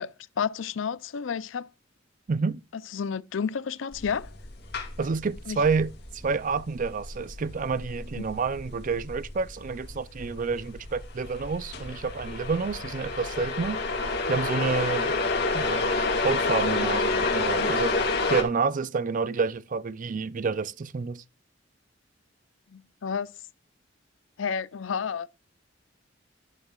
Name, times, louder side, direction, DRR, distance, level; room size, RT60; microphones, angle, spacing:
voice 1, 0.0-1.7 2.7-4.3 5.5-5.6 8.2-8.3 22.7-23.3 24.4-25.3, left 6 dB, 85° left, 0.5 m, -31 dB
voice 2, 2.3-2.6 5.0-13.8 14.3-15.1 15.5-15.9 16.2-17.9 18.3-21.2, right 4 dB, 45° right, 0.4 m, -29 dB
sound 1, 3.9-18.4, left 3 dB, 60° left, 2.4 m, -29 dB
10.5 x 9.9 x 2.4 m
head